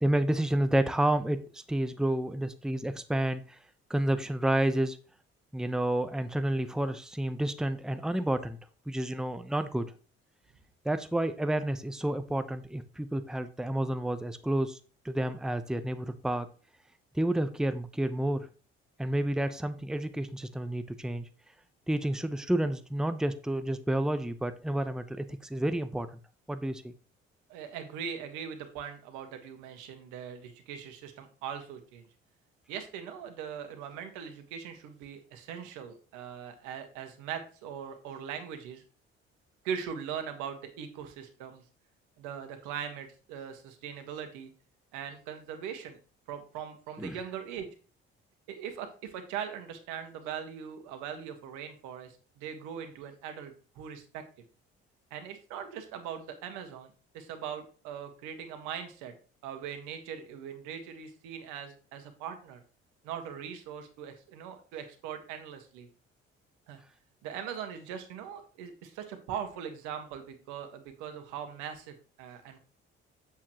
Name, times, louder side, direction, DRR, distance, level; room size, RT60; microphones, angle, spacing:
voice 1, 0.0-3.6 3.9-5.0 5.5-8.6 8.9-9.8 10.8-14.8 15.0-16.5 17.1-18.5 19.0-21.3 21.9-26.2 26.5-26.9 47.0-47.2, right 1 dB, ahead, 10 dB, 0.9 m, -30 dB
voice 2, 27.5-32.0 32.7-38.8 39.6-41.6 42.2-44.5 44.9-46.0 46.3-47.7 48.5-54.2 55.1-59.1 59.4-62.6 63.0-65.9 66.7-66.8 67.2-72.6, right 8 dB, 80° right, 7 dB, 1.7 m, -40 dB
8.5 x 7.4 x 3.0 m, 0.37 s
hypercardioid pair, 55°, 30 cm